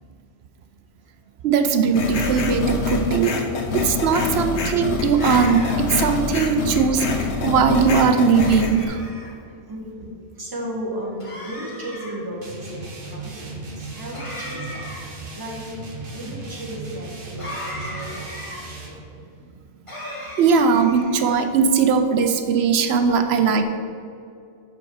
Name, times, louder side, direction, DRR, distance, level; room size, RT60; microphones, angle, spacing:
voice 1, 1.4-3.4 3.7-7.1 7.4-9.0 20.4-23.6, right 6 dB, 65° right, 7 dB, 0.7 m, -19 dB
sound 1, 1.9-8.9, left 4 dB, 60° left, 1.1 m, -25 dB
sound 2, 5.1-6.0 8.4-9.3 11.2-12.2 14.1-15.2 17.4-18.6 19.9-21.3, left 1 dB, 25° left, 1.6 m, -36 dB
voice 2, 9.5-15.0 15.3-15.6 16.1-18.9, equal, 15° right, -3 dB, 1.3 m, -35 dB
sound 3, 12.4-19.0, right 3 dB, 45° right, 1.2 m, -37 dB
5.5 x 5.4 x 6.3 m, 2.4 s
omnidirectional pair, 1.3 m